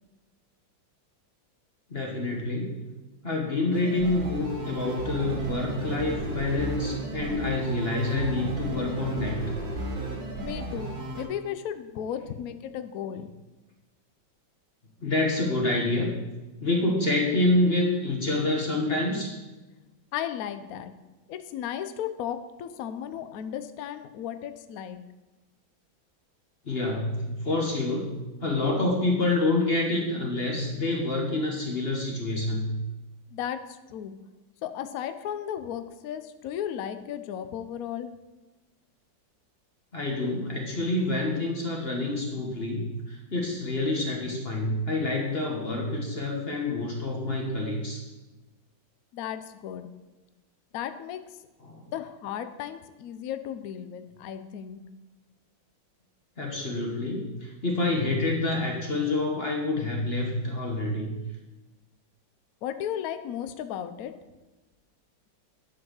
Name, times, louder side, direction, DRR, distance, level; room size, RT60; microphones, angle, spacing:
voice 1, 1.9-2.8 3.2-9.4 15.0-16.1 16.6-19.3 26.6-28.1 28.4-32.8 39.9-48.0 51.6-51.8 56.4-61.1, left 2 dB, 35° left, 0 dB, 1.4 m, -27 dB
sound 1, 3.7-11.2, right 1 dB, 70° right, 2.7 m, -34 dB
voice 2, 10.4-13.3 20.1-20.9 21.3-25.0 33.3-34.2 34.6-38.1 49.1-49.9 50.7-51.2 51.9-54.8 62.6-64.1, left 9 dB, 70° left, 10 dB, 0.9 m, -35 dB
11.0 x 4.7 x 6.3 m, 1.1 s
omnidirectional pair, 2.1 m